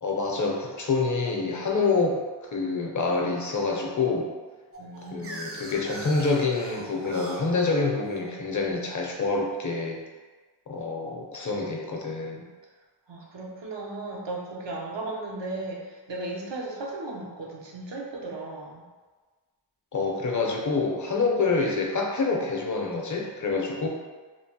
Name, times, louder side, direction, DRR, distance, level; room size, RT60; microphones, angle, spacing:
voice 1, 0.0-2.2 2.5-4.3 5.1-10.0 10.7-12.5 19.9-23.9, left 3 dB, 45° left, 0 dB, 0.6 m, -27 dB
sound 1, 4.7-9.5, right 2 dB, 35° right, 0.4 m, -42 dB
voice 2, 4.8-5.8 13.1-18.8, right 2 dB, 80° right, -2 dB, 0.6 m, -36 dB
3.0 x 2.0 x 2.7 m, 1.4 s
wide cardioid pair, 45°, 42 cm